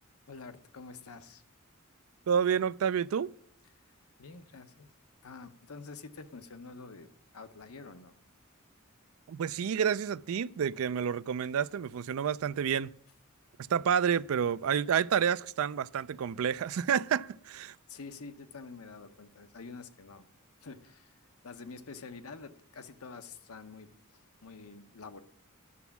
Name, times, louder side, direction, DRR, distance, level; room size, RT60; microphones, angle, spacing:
voice 1, 0.3-1.4 4.2-4.9 5.2-8.1 17.9-20.3 20.6-23.9 24.4-25.2, left 4 dB, 80° left, 0.9 m, -47 dB
voice 2, 2.3-3.3 9.3-12.9 13.7-17.7, right 7 dB, 70° right, 0.4 m, -29 dB
11.0 x 7.0 x 7.1 m
head